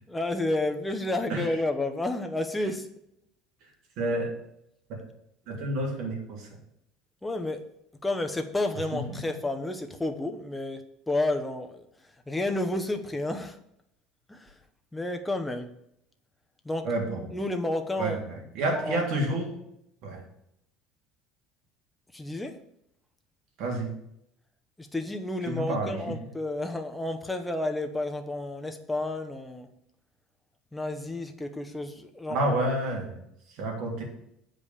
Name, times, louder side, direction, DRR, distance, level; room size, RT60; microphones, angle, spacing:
voice 1, 0.1-2.9 7.2-7.6 8.0-11.9 12.3-13.6 14.3-14.5 14.9-15.7 16.6-16.9 17.3-18.2 18.7-19.0 22.1-22.6 24.8-29.7 30.7-32.4, left 2 dB, 5° left, 5 dB, 0.9 m, -31 dB
voice 2, 4.0-4.3 4.9-5.0 5.5-6.5 8.9-9.0 16.8-17.3 18.0-19.5 20.0-20.2 23.6-23.9 25.4-26.0 32.3-33.1 33.5-34.0, right 1 dB, 55° right, 0 dB, 3.2 m, -29 dB
8.2 x 5.2 x 7.3 m, 0.77 s
cardioid pair, 155°, 0 cm